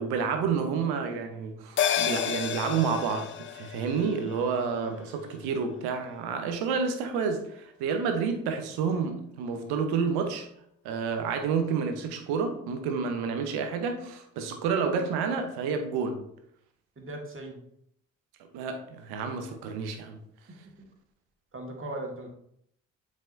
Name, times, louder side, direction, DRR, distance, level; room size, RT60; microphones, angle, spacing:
voice 1, 0.0-10.5 10.8-16.2 18.5-20.2, right 5 dB, 75° right, 1.0 m, -29 dB
sound 1, 1.8-6.5 6.8-6.9, left 9 dB, 35° left, 0.4 m, -32 dB
voice 2, 17.0-17.6 20.6-20.7 21.5-22.3, right 1 dB, 30° right, 1.9 m, -38 dB
7.3 x 4.8 x 2.7 m
hypercardioid pair, 40°, 39 cm